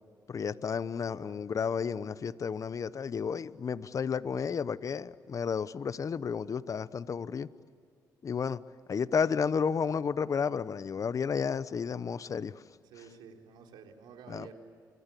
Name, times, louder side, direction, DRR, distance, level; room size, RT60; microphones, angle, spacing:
voice 1, 0.3-7.5 8.2-8.6 8.9-12.6 14.3-14.5, left 6 dB, 45° left, 16 dB, 0.9 m, -32 dB
voice 2, 1.1-1.4 12.8-14.5, right 6 dB, 85° right, 2 dB, 4.2 m, -51 dB
29.5 x 23.5 x 8.5 m, 2.3 s
cardioid pair, 80°, 8 cm